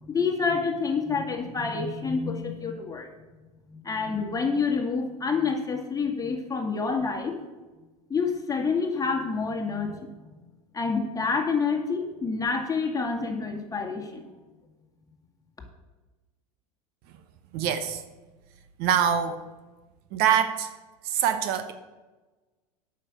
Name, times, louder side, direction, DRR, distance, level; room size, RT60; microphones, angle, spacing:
voice 1, 0.0-3.1 3.7-7.3 8.1-10.1 10.7-14.2, left 5 dB, 20° left, 3 dB, 2.0 m, -28 dB
voice 2, 17.5-18.0 18.8-19.4 20.1-20.7 21.0-21.7, right 9 dB, 55° right, 9 dB, 1.0 m, -24 dB
8.8 x 6.2 x 7.5 m, 1.2 s
hypercardioid pair, 95°, 19 cm